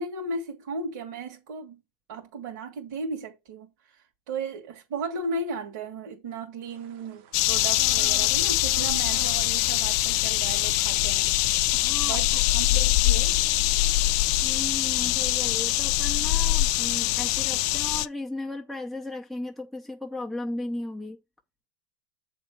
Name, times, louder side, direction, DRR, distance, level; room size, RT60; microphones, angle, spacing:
voice 1, 0.0-1.8 2.1-11.3 12.0-13.4, right 3 dB, 75° right, 1.8 m, -35 dB
sound 1, 6.7-11.9, right 10 dB, 50° right, 0.9 m, -47 dB
sound 2, 7.3-18.1, left 16 dB, 60° left, 0.4 m, -23 dB
voice 2, 11.7-12.4 14.4-21.2, left 2 dB, ahead, 0.5 m, -36 dB
7.9 x 3.3 x 5.4 m
supercardioid pair, 155°, 10 cm